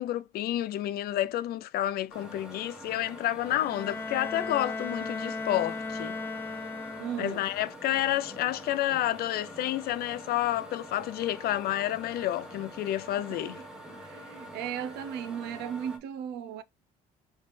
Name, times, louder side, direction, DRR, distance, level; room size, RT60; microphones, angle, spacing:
voice 1, 0.0-6.2 7.2-13.6, left 13 dB, 65° left, 0.5 m, -30 dB
sound 1, 2.1-16.0, equal, 5° right, 1.4 m, -45 dB
Bowed string instrument, 3.4-7.5, left 3 dB, 10° left, 0.8 m, -36 dB
voice 2, 7.0-7.5 13.2-16.6, right 8 dB, 85° right, 0.6 m, -37 dB
4.2 x 3.2 x 3.2 m
cardioid pair, 110°, 17 cm